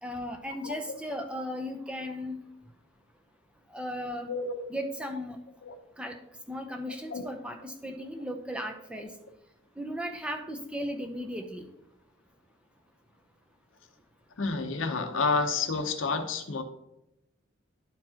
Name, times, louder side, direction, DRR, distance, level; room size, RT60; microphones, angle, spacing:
voice 1, 0.0-2.4 3.7-4.3 4.7-5.4 6.0-6.1 6.5-9.1 9.8-11.6, equal, 5° right, 4 dB, 0.6 m, -36 dB
voice 2, 4.3-4.6 5.6-5.7 7.1-7.2 14.4-16.6, left 4 dB, 75° left, 7 dB, 0.8 m, -29 dB
12.0 x 4.5 x 2.8 m, 0.86 s
head